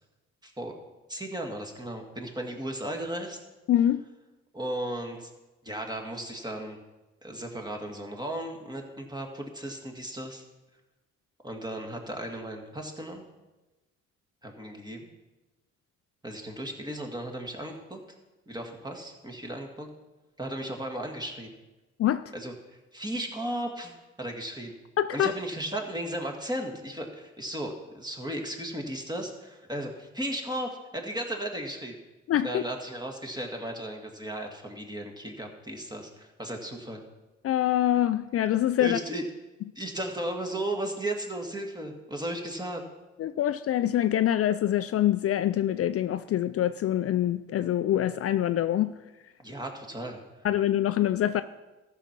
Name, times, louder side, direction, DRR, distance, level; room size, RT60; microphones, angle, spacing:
voice 1, 0.4-0.7 1.1-3.4 4.5-5.3 5.6-6.8 7.2-10.4 11.4-13.2 14.4-15.1 16.2-18.0 18.5-19.9 20.4-21.6 22.3-24.8 25.1-32.0 32.4-37.0 38.8-39.2 39.8-42.8 49.4-50.5, right 1 dB, 15° right, 1.9 m, -35 dB
voice 2, 3.7-4.0 22.0-22.2 25.0-25.3 32.3-32.6 37.4-39.0 43.2-48.9 50.4-51.4, left 12 dB, 50° left, 0.4 m, -25 dB
13.5 x 5.9 x 6.0 m
cardioid pair, 90°, 30 cm